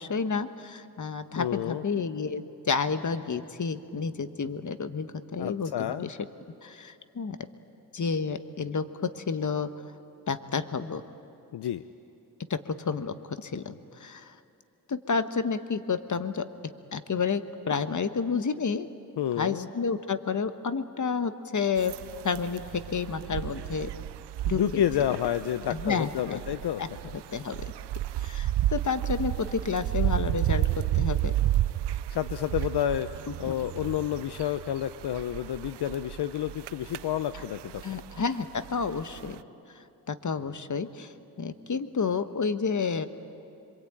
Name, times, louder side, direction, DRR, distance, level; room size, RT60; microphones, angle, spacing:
voice 1, 0.0-6.2 6.6-7.4 7.9-9.7 10.3-11.0 12.5-14.4 14.9-16.5 16.9-18.9 19.4-22.0 22.2-23.9 24.4-24.8 25.7-26.4 26.8-27.6 28.2-31.3 33.3-33.5 37.3-37.4 37.8-39.4 39.7-43.1, left 5 dB, 45° left, 10 dB, 1.3 m, -30 dB
voice 2, 1.4-1.8 5.4-6.1 11.5-11.8 19.2-19.7 24.5-26.8 32.1-33.1 33.4-38.0, left 10 dB, 75° left, 12 dB, 0.7 m, -29 dB
Rooks in the trees - winter, 21.8-39.4, right 13 dB, 90° right, 0.5 m, -32 dB
25.5 x 23.5 x 8.9 m, 2.8 s
cardioid pair, 50°, 40 cm